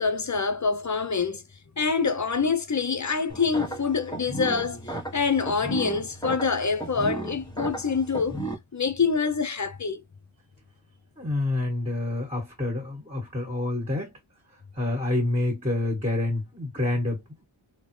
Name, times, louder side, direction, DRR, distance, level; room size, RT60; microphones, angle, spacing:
voice 1, 0.0-1.4 1.8-8.4 8.7-10.0, left 5 dB, 35° left, 0.5 m, -26 dB
sound 1, 3.3-8.5, right 2 dB, 10° left, 1.1 m, -35 dB
voice 2, 11.2-14.1 14.7-17.4, left 2 dB, 15° right, 1.6 m, -28 dB
3.6 x 2.1 x 3.1 m
wide cardioid pair, 50°, 50 cm